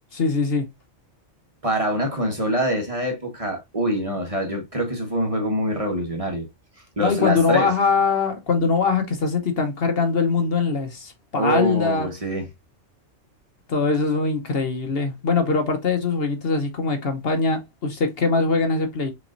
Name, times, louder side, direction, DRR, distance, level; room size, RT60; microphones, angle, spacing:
voice 1, 0.1-0.7 7.0-12.1 13.7-19.1, left 4 dB, 55° left, 1.1 m, -22 dB
voice 2, 1.6-6.5 7.0-7.7 11.4-12.5, equal, 30° right, 1.2 m, -25 dB
6.3 x 3.0 x 2.5 m
omnidirectional pair, 1.3 m